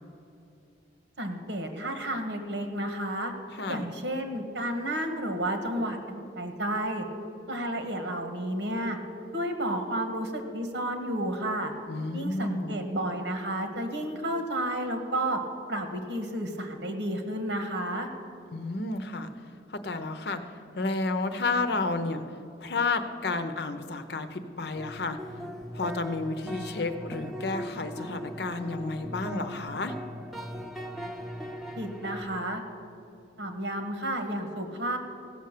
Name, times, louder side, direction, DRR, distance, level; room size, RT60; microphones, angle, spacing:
voice 1, 1.2-3.3 3.7-7.0 7.5-9.0 9.3-11.7 12.1-15.4 15.7-18.1 31.8-32.6 33.4-35.0, right 1 dB, 75° right, 6 dB, 1.5 m, -31 dB
voice 2, 11.9-12.8 18.5-19.3 19.7-20.4 20.8-22.2 22.6-25.2 25.7-29.9, left 3 dB, 65° left, 9 dB, 0.8 m, -31 dB
sound 1, 24.8-32.2, equal, ahead, 0.7 m, -39 dB
16.0 x 6.8 x 6.7 m, 2.6 s
head